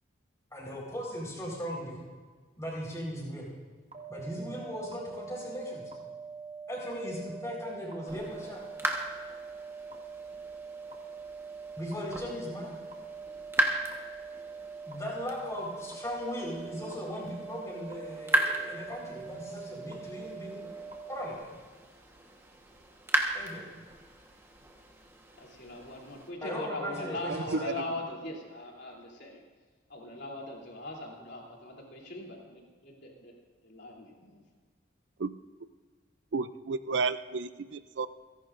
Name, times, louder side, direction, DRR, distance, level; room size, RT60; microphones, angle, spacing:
voice 1, 0.5-2.0 2.6-3.5 4.1-5.8 6.7-8.6 11.8-12.7 14.9-20.6 21.1-21.5 23.3-23.6 26.4-27.6, equal, 15° left, -3 dB, 4.3 m, -38 dB
sound 1, 3.9-21.3, right 5 dB, 35° right, 1.3 m, -44 dB
sound 2, 8.1-26.3, right 1 dB, 15° right, 1.2 m, -37 dB
voice 2, 25.4-29.4 29.9-33.3 33.6-34.4, left 1 dB, 60° left, -2 dB, 3.2 m, -40 dB
voice 3, 27.3-27.8 35.2-35.3 36.3-38.1, right 4 dB, 70° right, 13 dB, 0.5 m, -32 dB
28.5 x 11.0 x 2.6 m, 1.5 s
head